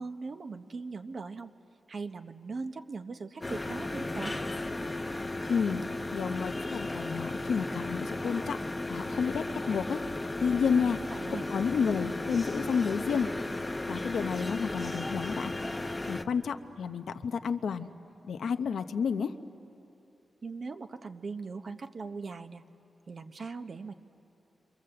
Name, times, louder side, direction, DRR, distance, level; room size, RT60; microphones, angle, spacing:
voice 1, 0.0-1.5 1.9-4.3 10.6-10.7 11.1-11.5 20.4-22.6 23.1-23.9, right 4 dB, 50° right, 8 dB, 1.1 m, -40 dB
sound 1, 3.4-16.2, left 2 dB, 15° left, 1.0 m, -35 dB
voice 2, 5.5-5.8 6.1-8.6 8.9-10.0 10.4-11.0 11.4-13.3 13.9-15.5 16.1-17.9 18.3-19.4, left 6 dB, 85° left, 9 dB, 0.9 m, -30 dB
28.5 x 25.5 x 7.8 m, 2.9 s
wide cardioid pair, 105°, 0 cm